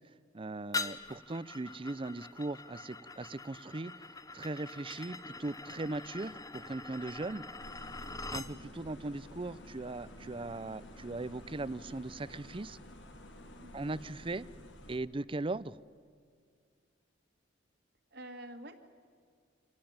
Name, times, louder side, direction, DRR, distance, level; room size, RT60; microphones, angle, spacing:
voice 1, 0.3-7.4 8.3-12.8 13.7-14.5 14.9-15.8, right 2 dB, 30° right, 19 dB, 0.5 m, -39 dB
sound 1, 0.7-8.5, left 3 dB, 20° left, 0.9 m, -43 dB
sound 2, 7.6-15.0, left 1 dB, 80° left, 2.4 m, -51 dB
voice 2, 18.1-18.9, right 1 dB, 60° right, 6 dB, 2.0 m, -47 dB
26.0 x 18.5 x 8.8 m, 2.1 s
head